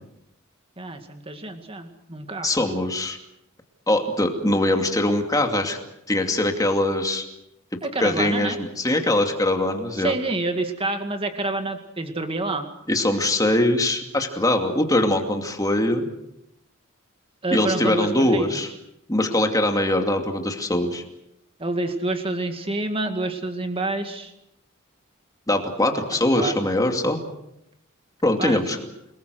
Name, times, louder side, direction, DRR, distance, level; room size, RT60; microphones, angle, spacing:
voice 1, 0.8-2.6 7.8-8.6 10.0-12.6 17.4-18.6 21.6-24.3 26.4-26.5 28.4-28.6, right 2 dB, 25° right, 6 dB, 2.0 m, -28 dB
voice 2, 2.4-3.2 3.9-5.8 6.1-7.2 7.7-10.1 12.9-16.1 17.5-18.7 19.1-21.0 25.5-27.2 28.2-28.8, left 1 dB, 15° left, 4 dB, 2.5 m, -22 dB
29.5 x 20.5 x 6.4 m, 0.82 s
head